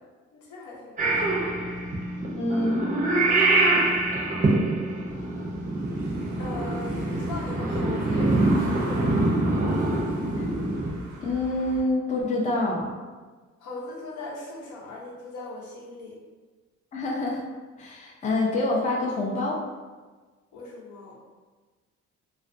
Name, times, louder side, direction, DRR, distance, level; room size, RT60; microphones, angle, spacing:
voice 1, 0.3-1.5 3.1-3.9 6.4-9.4 13.6-16.2 20.5-21.2, left 2 dB, 75° left, -4 dB, 0.8 m, -40 dB
Purr / Meow, 1.0-10.9, right 2 dB, 25° right, 0.6 m, -25 dB
voice 2, 2.3-2.8 10.4-10.5 11.2-12.9 16.9-17.4 17.8-19.6, left 2 dB, 25° left, -2 dB, 0.4 m, -26 dB
Car passing by / Engine, 5.1-11.8, right 1 dB, 80° right, 0.6 m, -39 dB
2.4 x 2.1 x 2.5 m, 1.4 s
cardioid pair, 90°, 30 cm